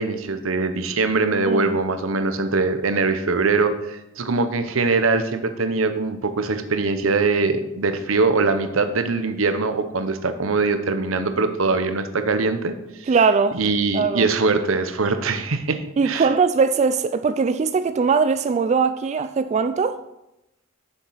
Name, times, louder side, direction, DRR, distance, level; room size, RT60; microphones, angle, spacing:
voice 1, 0.0-12.7 13.0-13.2 13.5-16.3, right 3 dB, 85° right, 0.8 m, -22 dB
voice 2, 1.5-1.8 13.1-13.6 13.9-14.3 16.0-20.0, right 5 dB, 35° right, 0.3 m, -20 dB
7.2 x 7.1 x 5.6 m
head